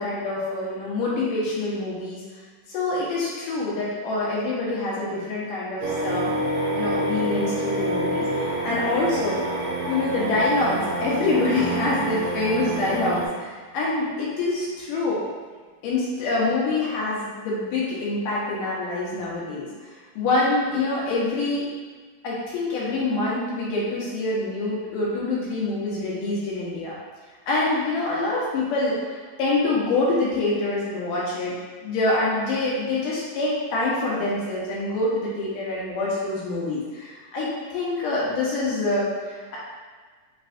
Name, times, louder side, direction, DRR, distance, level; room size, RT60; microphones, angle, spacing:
voice 1, 0.0-2.2 2.7-6.3 6.7-8.3 8.6-9.4 9.9-15.2 15.8-19.7 20.2-21.7 22.2-27.0 27.5-31.5 31.8-39.6, left 2 dB, 85° left, -6 dB, 2.7 m, -25 dB
sound 1, 5.8-13.3, right 1 dB, 90° right, 2.4 m, -27 dB
sound 2, 11.5-14.4, right 5 dB, 65° right, 2.2 m, -37 dB
6.0 x 3.3 x 2.6 m, 1.5 s
omnidirectional pair, 3.7 m